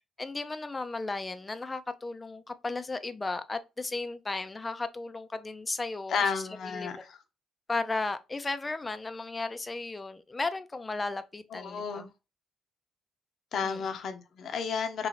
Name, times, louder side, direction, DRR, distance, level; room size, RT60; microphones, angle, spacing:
voice 1, 0.2-6.2 6.6-7.0 7.7-12.1 13.6-14.0, left 3 dB, 25° left, 0.4 m, -35 dB
voice 2, 6.1-7.2 11.5-12.1 13.5-15.1, left 6 dB, 60° left, 0.6 m, -32 dB
3.0 x 2.5 x 3.0 m
cardioid pair, 90°, 0 cm